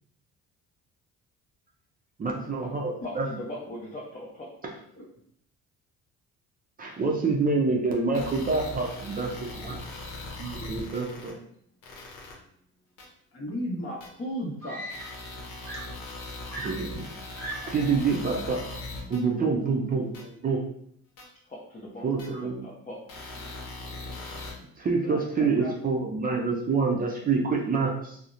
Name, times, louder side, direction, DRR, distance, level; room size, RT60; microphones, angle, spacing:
voice 1, 2.2-3.3 4.6-4.7 6.8-9.8 10.4-11.3 16.6-17.0 17.6-18.6 19.1-20.6 22.0-22.7 24.8-28.2, right 4 dB, 30° right, 0 dB, 0.5 m, -27 dB
voice 2, 3.0-4.5 21.5-22.1 22.6-23.1, left 1 dB, 25° left, -4 dB, 0.6 m, -40 dB
sound 1, 8.1-11.3 11.8-12.3 13.0-13.1 14.0-14.1 14.9-19.2 20.1-20.2 21.2-21.3 22.2-22.3 23.1-24.5, left 2 dB, 75° left, 0.8 m, -40 dB
voice 3, 13.3-15.0 25.0-25.7, equal, 45° left, -3 dB, 1.0 m, -35 dB
Screaming, 13.8-13.9 14.6-15.4 15.6-17.9 18.9-19.2, right 1 dB, 5° left, 0.9 m, -40 dB
2.8 x 2.0 x 2.4 m, 0.66 s
cardioid pair, 90°, 31 cm